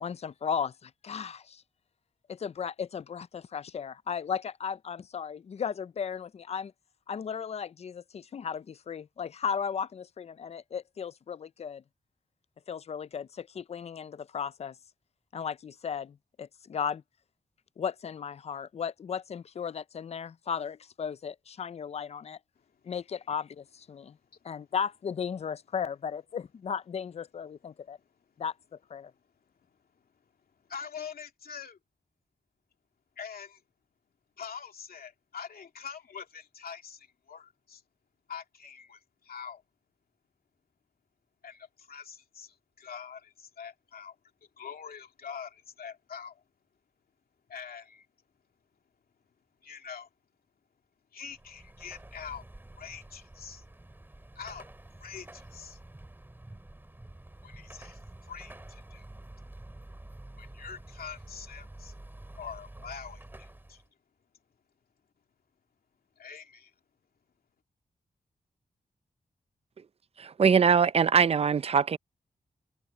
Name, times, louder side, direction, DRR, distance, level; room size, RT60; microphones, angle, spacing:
voice 1, 0.0-1.6 2.3-6.7 7.1-11.8 12.7-14.7 15.3-17.0 17.8-22.4 22.8-24.2 24.4-28.0 28.4-28.5 28.9-29.1, left 7 dB, 45° left, 0.4 m, -35 dB
voice 2, 30.7-31.8 33.2-33.6 34.4-37.8 38.3-39.6 41.4-44.2 44.6-46.4 47.5-48.1 49.6-50.1 51.1-52.4 52.8-53.6 54.3-54.7 55.0-55.8 57.4-59.1 60.4-61.9 62.4-63.8 66.2-66.7, left 7 dB, 75° left, 2.6 m, -44 dB
Car passing by / Traffic noise roadway noise / Engine, 51.2-63.9, right 1 dB, 15° right, 2.4 m, -49 dB
voice 3, 70.2-72.0, right 6 dB, 40° right, 0.5 m, -22 dB
wide cardioid pair, 155°, 16 cm